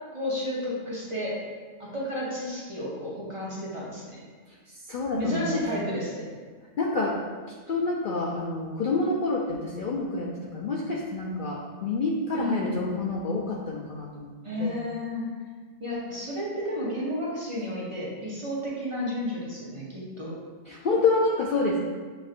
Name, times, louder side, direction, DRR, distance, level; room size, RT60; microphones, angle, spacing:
voice 1, 0.1-1.4 1.8-4.0 5.2-6.3 12.4-12.9 14.4-15.3 15.8-20.4, left 1 dB, 30° right, -7 dB, 0.8 m, -32 dB
voice 2, 4.9-5.6 6.8-7.2 7.7-14.3 14.6-14.8 20.7-21.8, left 3 dB, 60° left, -3 dB, 0.5 m, -28 dB
7.5 x 2.6 x 2.5 m, 1.5 s
omnidirectional pair, 1.3 m